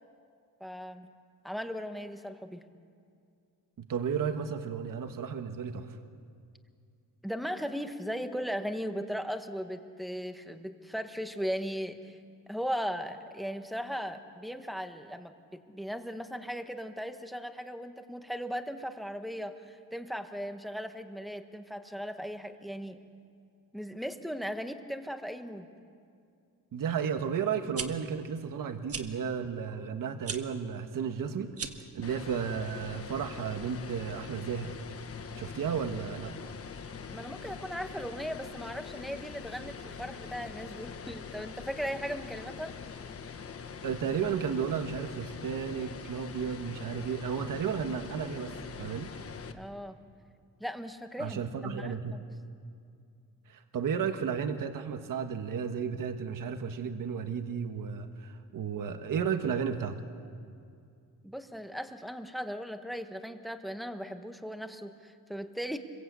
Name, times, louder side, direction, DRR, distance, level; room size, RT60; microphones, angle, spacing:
voice 1, 0.6-1.1 1.4-2.6 7.2-12.2 12.5-23.0 23.7-25.7 37.1-42.7 49.5-50.0 50.6-52.2 61.2-65.8, equal, ahead, 7 dB, 1.3 m, -37 dB
voice 2, 3.8-6.0 26.7-31.5 31.9-34.7 35.4-36.3 43.8-49.1 51.2-52.1 53.5-60.0, right 7 dB, 60° right, 7 dB, 1.5 m, -33 dB
sound 1, 27.7-27.9 28.9-29.1 30.2-30.4 31.5-31.9, right 6 dB, 40° right, 1.5 m, -36 dB
sound 2, 32.0-49.5, left 6 dB, 40° left, 1.3 m, -43 dB
28.5 x 22.5 x 8.3 m, 2.4 s
wide cardioid pair, 170°, 36 cm